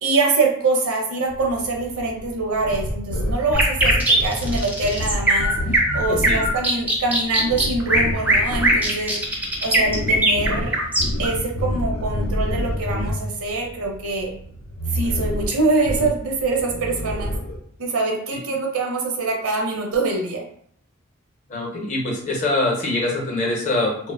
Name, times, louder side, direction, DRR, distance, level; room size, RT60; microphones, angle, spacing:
voice 1, 0.0-5.5 5.9-10.8 11.2-14.3 14.9-17.3 17.8-20.4, right 3 dB, 80° right, 0 dB, 0.6 m, -24 dB
sound 1, 1.3-17.6, equal, 85° left, 0.5 m, -29 dB
sound 2, 3.5-11.3, right 1 dB, 10° right, 0.4 m, -19 dB
voice 2, 21.5-24.1, left 2 dB, 35° left, -1 dB, 0.6 m, -24 dB
2.8 x 2.1 x 2.3 m, 0.64 s
head